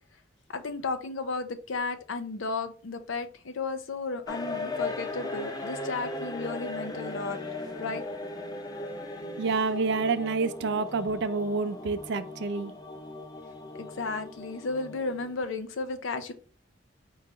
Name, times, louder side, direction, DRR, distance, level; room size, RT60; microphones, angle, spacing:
voice 1, 0.5-7.4 7.8-8.0 13.8-16.3, left 3 dB, 90° left, 0.6 m, -34 dB
sound 1, 4.3-15.5, left 2 dB, 20° left, 0.4 m, -38 dB
voice 2, 9.4-12.7, right 4 dB, 65° right, 0.4 m, -28 dB
4.6 x 2.9 x 3.4 m
head